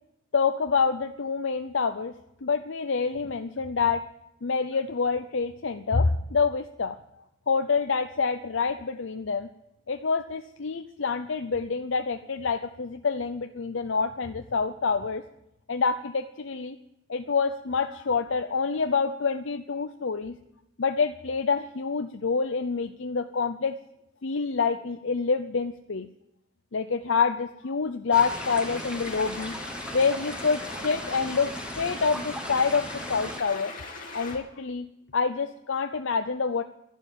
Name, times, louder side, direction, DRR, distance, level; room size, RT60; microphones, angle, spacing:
voice 1, 0.3-4.1 4.4-7.0 7.5-9.5 9.9-15.2 15.7-16.8 17.1-20.4 20.8-23.8 24.2-26.1 26.7-29.6 29.9-33.7 34.1-34.9 35.1-36.6, left 5 dB, 70° left, 8 dB, 0.7 m, -27 dB
sound 1, 28.1-34.4, left 3 dB, 45° left, 2.7 m, -40 dB
sound 2, 28.1-33.4, right 1 dB, 5° right, 1.1 m, -38 dB
12.0 x 11.5 x 8.0 m, 0.85 s
head